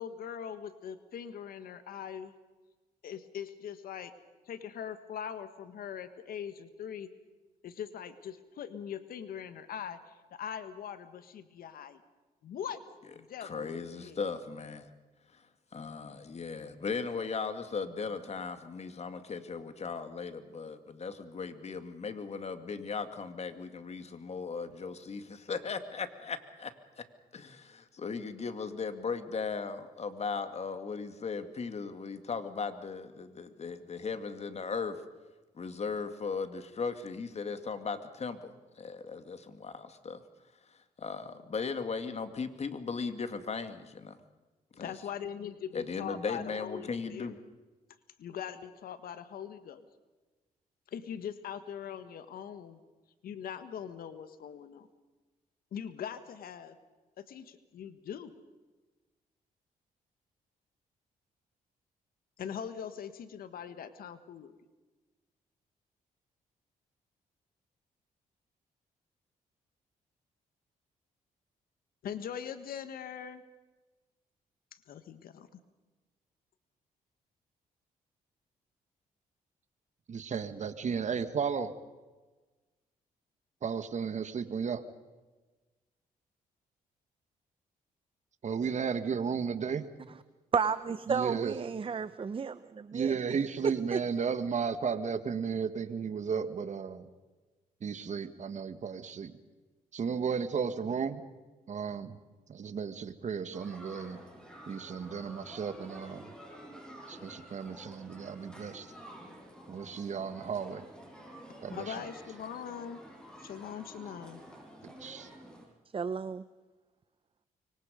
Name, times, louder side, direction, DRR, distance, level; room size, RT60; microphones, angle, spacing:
voice 1, 0.0-2.3 3.0-4.1 4.4-7.1 7.6-12.0 12.4-12.8 13.1-14.2 44.7-47.4 48.2-49.9 50.9-52.8 53.2-54.9 55.7-56.8 57.2-58.4 62.4-64.6 72.0-73.4 74.9-75.5 111.7-113.0 113.4-114.4, left 8 dB, 75° left, 11 dB, 1.6 m, -41 dB
voice 2, 13.4-14.9 15.3-15.4 15.7-27.1 27.3-35.0 35.6-40.2 41.0-44.2 44.8-44.9 45.7-47.4, left 5 dB, 45° left, 9 dB, 2.3 m, -37 dB
voice 3, 80.1-81.8 83.6-84.8 88.4-89.9 91.1-91.5 92.9-97.1 97.8-99.4 99.9-101.2 101.7-102.2 102.5-104.2 104.7-106.3 107.1-108.9 109.7-110.9 111.6-112.0 115.0-115.3, right 6 dB, 50° right, 11 dB, 1.8 m, -34 dB
voice 4, 90.5-93.1 93.6-94.0 115.9-116.4, right 6 dB, 35° right, 14 dB, 0.8 m, -32 dB
sound 1, 103.5-115.7, equal, 5° left, 7.7 m, -50 dB
25.5 x 24.0 x 5.2 m, 1.2 s
cardioid pair, 75°, 15 cm